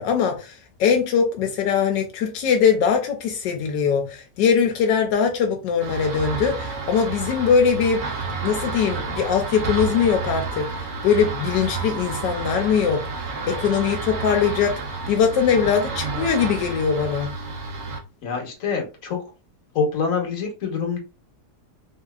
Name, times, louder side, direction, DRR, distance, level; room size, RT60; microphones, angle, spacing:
voice 1, 0.0-8.0 8.4-13.0 13.5-14.8 15.1-17.3, left 7 dB, 85° left, 1.2 m, -21 dB
sound 1, 5.8-18.0, right 4 dB, 55° right, 0.8 m, -30 dB
voice 2, 18.2-19.2 19.7-21.0, left 5 dB, 55° left, 1.4 m, -25 dB
3.6 x 2.7 x 2.3 m
omnidirectional pair, 1.9 m